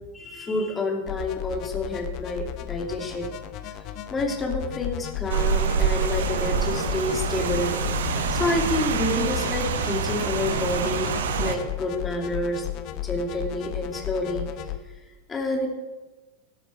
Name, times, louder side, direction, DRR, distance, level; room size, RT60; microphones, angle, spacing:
voice 1, 0.1-3.3 3.6-3.7 4.1-7.8 8.1-11.1 11.4-12.7 12.9-14.5 15.3-15.7, left 2 dB, 15° left, 2 dB, 2.8 m, -28 dB
sound 1, 1.1-14.8, left 13 dB, 40° left, 1.0 m, -34 dB
Rain, 5.3-11.6, right 7 dB, 60° right, 1.2 m, -26 dB
18.0 x 12.5 x 4.7 m, 1.2 s
figure-of-eight pair, 90°, 0 cm